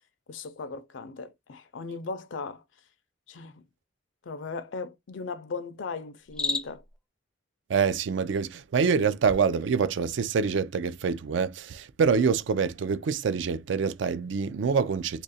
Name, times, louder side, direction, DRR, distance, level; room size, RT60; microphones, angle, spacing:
voice 1, 0.3-2.6 3.3-3.6 4.3-6.8, left 4 dB, 75° left, 0.5 m, -37 dB
Cricket, 6.2-7.0, left 3 dB, 5° left, 0.4 m, -31 dB
voice 2, 7.7-15.2, right 5 dB, 70° right, 0.4 m, -26 dB
2.8 x 2.4 x 4.0 m
head